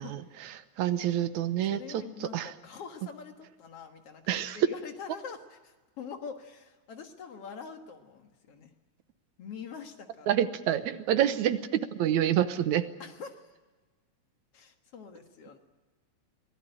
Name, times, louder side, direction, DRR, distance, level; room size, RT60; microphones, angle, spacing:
voice 1, 0.0-2.5 4.3-4.6 10.3-11.6 11.9-12.9, right 11 dB, 80° right, 11 dB, 2.3 m, -28 dB
voice 2, 1.7-8.7 9.4-10.4 11.3-11.4 13.0-13.4 14.5-15.6, left 6 dB, 55° left, 5 dB, 2.4 m, -44 dB
24.5 x 18.0 x 9.1 m, 1.3 s
omnidirectional pair, 3.4 m